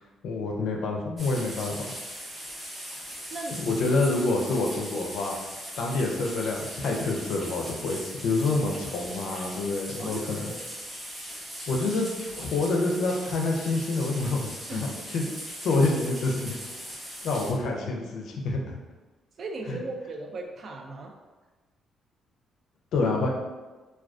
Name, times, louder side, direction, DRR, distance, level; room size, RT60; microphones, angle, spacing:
voice 1, 0.2-1.8 3.5-5.3 5.8-10.4 11.7-15.2 15.6-16.6 17.2-18.8 19.7-19.8 22.9-23.3, left 3 dB, 75° left, 1 dB, 0.4 m, -27 dB
sound 1, 1.2-17.5, equal, 15° right, 0.7 m, -39 dB
voice 2, 10.0-10.6 14.7-15.1 19.4-21.2, right 2 dB, 55° right, 2 dB, 0.3 m, -37 dB
2.3 x 2.2 x 2.4 m, 1.2 s
cardioid pair, 90°, 0 cm